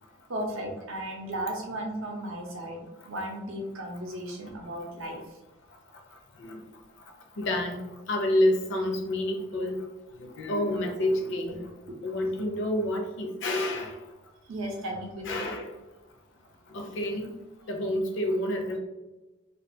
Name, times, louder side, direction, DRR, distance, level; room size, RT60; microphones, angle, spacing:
voice 1, 0.3-5.4 10.3-10.4 11.9-12.0 14.4-15.5, right 1 dB, 65° right, 0 dB, 0.6 m, -35 dB
voice 2, 7.4-7.8 8.1-9.8 10.2-11.7 12.0-13.9 15.3-15.7 16.7-17.3 17.7-18.8, left 1 dB, 55° left, 2 dB, 0.5 m, -28 dB
2.3 x 2.2 x 2.6 m, 1.1 s
head